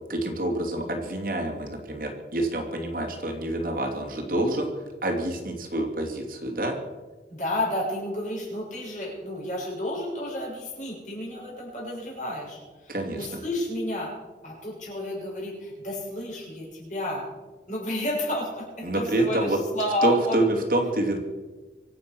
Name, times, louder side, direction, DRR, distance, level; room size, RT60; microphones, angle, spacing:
voice 1, 0.1-4.7 5.0-6.8 12.9-13.3 18.8-19.6 20.0-21.2, right 1 dB, 50° right, 2 dB, 2.7 m, -27 dB
voice 2, 7.3-14.2 14.4-17.3 17.7-20.4, left 1 dB, 45° left, -3 dB, 6.8 m, -31 dB
25.0 x 8.5 x 6.2 m, 1.3 s
head